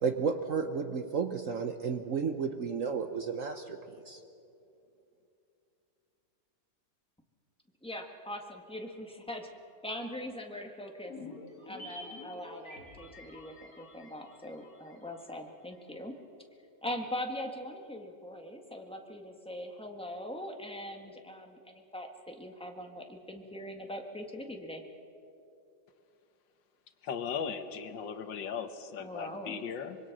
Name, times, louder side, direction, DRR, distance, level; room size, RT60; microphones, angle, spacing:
voice 1, 0.0-3.8 4.1-4.2, right 5 dB, 55° right, 8 dB, 1.0 m, -32 dB
voice 2, 7.8-9.5 9.8-11.1 11.7-16.1 16.8-24.8 29.0-29.6, left 1 dB, 5° left, 2 dB, 1.6 m, -41 dB
sound 1, 11.0-15.5 15.8-15.9, left 2 dB, 50° left, 2.7 m, -49 dB
voice 3, 27.0-30.0, left 6 dB, 75° left, 9 dB, 1.7 m, -37 dB
25.0 x 22.5 x 6.1 m, 2.7 s
omnidirectional pair, 2.0 m